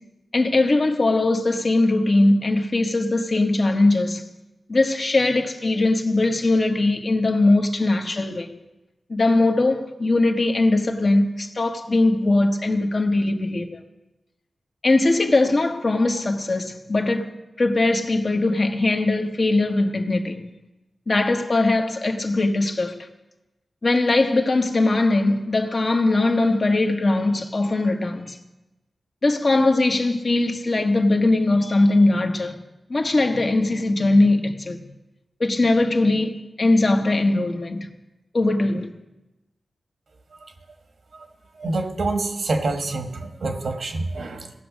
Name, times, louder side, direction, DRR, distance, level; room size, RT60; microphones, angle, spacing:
voice 1, 0.3-4.2 4.7-8.6 9.1-13.8 14.8-17.3 17.6-20.5 21.1-23.1 23.8-28.4 29.2-32.5 32.9-34.8 35.4-37.9 38.3-38.9, left 2 dB, 50° left, 1.1 m, -20 dB
voice 2, 41.6-44.5, right 2 dB, 75° right, 1.2 m, -27 dB
17.0 x 6.1 x 5.1 m
cardioid pair, 50°, 0 cm